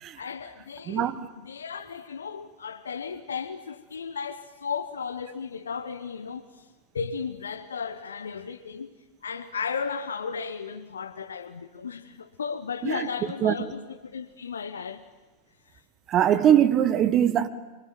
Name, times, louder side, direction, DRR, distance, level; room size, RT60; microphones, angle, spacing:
voice 1, 0.2-1.1 1.4-6.6 6.9-9.0 9.2-15.0, left 6 dB, 70° left, 1.1 m, -35 dB
voice 2, 0.9-1.3 12.8-13.1 13.4-13.5 16.1-17.5, right 10 dB, 30° right, 1.4 m, -21 dB
26.0 x 25.5 x 9.1 m
figure-of-eight pair, 90°, 0 cm